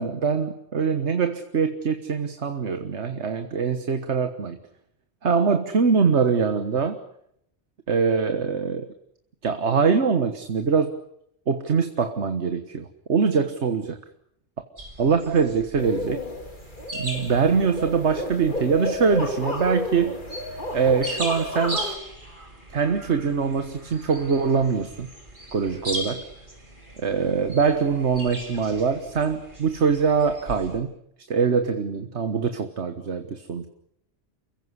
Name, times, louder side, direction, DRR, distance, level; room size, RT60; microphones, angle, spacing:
voice 1, 0.0-4.6 5.2-7.0 7.9-8.9 9.4-10.9 11.5-14.0 15.0-16.2 16.9-20.1 20.7-21.8 22.7-25.1 25.5-26.2 27.0-30.9 31.3-33.7, right 5 dB, 75° right, 8 dB, 1.7 m, -23 dB
sound 1, 14.8-30.8, right 1 dB, 45° right, 6.3 m, -39 dB
sound 2, 15.8-21.9, left 2 dB, 45° left, 2.9 m, -32 dB
29.0 x 16.0 x 9.7 m, 0.75 s
omnidirectional pair, 1.2 m